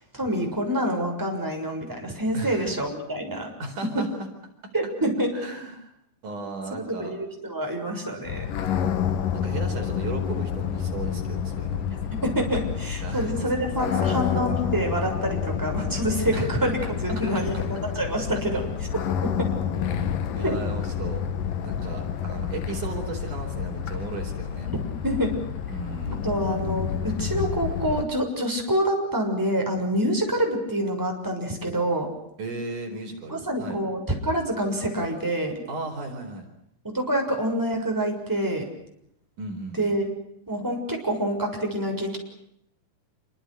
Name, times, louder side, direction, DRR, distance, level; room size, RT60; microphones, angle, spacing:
voice 1, 0.1-3.5 3.9-4.0 4.7-5.3 6.7-8.4 12.2-18.6 19.2-19.3 20.4-20.6 24.7-24.8 25.0-25.3 26.2-32.1 33.3-35.6 36.9-38.7 39.8-40.1 40.5-42.2, right 1 dB, 5° right, 2 dB, 6.4 m, -26 dB
voice 2, 2.3-2.7 3.6-4.3 4.6-4.7 5.3-5.9 6.2-7.2 9.3-11.9 13.0-13.5 13.8-14.3 16.3-16.5 19.3-19.6 20.3-21.2 21.6-24.7 25.7-26.2 32.4-33.8 35.7-36.5 39.4-39.9, right 3 dB, 60° right, 4 dB, 5.8 m, -36 dB
sound 1, 8.2-28.1, left 8 dB, 75° left, 3.3 m, -29 dB
28.0 x 25.0 x 6.5 m, 0.74 s
omnidirectional pair, 4.0 m